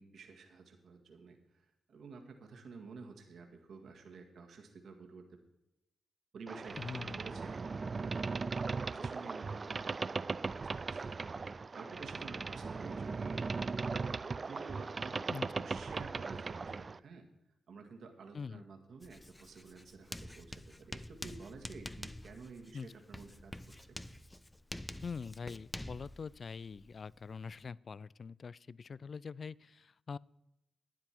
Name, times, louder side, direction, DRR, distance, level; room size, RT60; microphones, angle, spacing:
voice 1, 0.0-1.4 1.9-5.3 6.3-6.8 7.2-8.2 8.8-11.2 11.4-15.2 15.6-17.3 17.7-24.0, right 4 dB, 70° right, 3 dB, 1.7 m, -51 dB
Boat Water vehicle, 6.5-17.0, right 4 dB, 45° right, 0.4 m, -38 dB
voice 2, 6.7-7.2 15.3-15.7 18.3-18.6 22.7-22.9 25.0-30.2, left 5 dB, 55° left, 22 dB, 0.3 m, -44 dB
Writing, 19.0-27.7, left 1 dB, 15° left, 0.6 m, -48 dB
12.0 x 9.7 x 4.5 m, 0.89 s
supercardioid pair, 50°, 0 cm